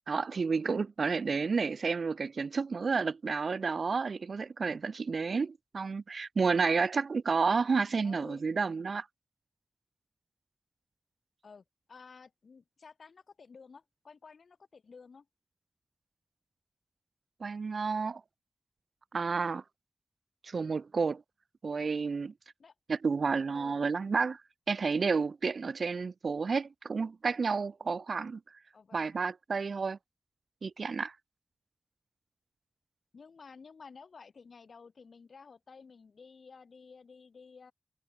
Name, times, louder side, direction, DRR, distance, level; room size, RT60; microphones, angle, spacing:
voice 1, 0.1-9.1 17.4-18.2 19.1-19.6 20.4-21.2 21.6-22.3 22.9-24.4 24.7-28.4 28.9-30.0 30.6-31.1, right 4 dB, 80° right, 0.3 m, -31 dB
voice 2, 8.0-8.4 11.4-15.3 22.6-22.7 23.5-23.8 28.7-29.2 33.1-37.7, left 5 dB, 90° left, 2.4 m, -53 dB
wide cardioid pair, 65°, 0 cm